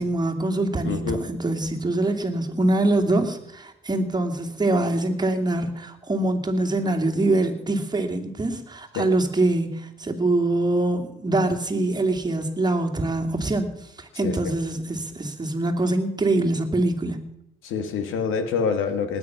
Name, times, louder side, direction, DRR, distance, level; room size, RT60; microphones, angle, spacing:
voice 1, 0.0-13.7 14.0-17.2, right 2 dB, 20° right, 1 dB, 2.6 m, -24 dB
voice 2, 0.8-1.2 9.0-9.1 14.2-14.5 17.6-19.2, left 5 dB, 85° left, 9 dB, 1.9 m, -26 dB
19.5 x 9.0 x 5.9 m, 0.82 s
cardioid pair, 90°, 20 cm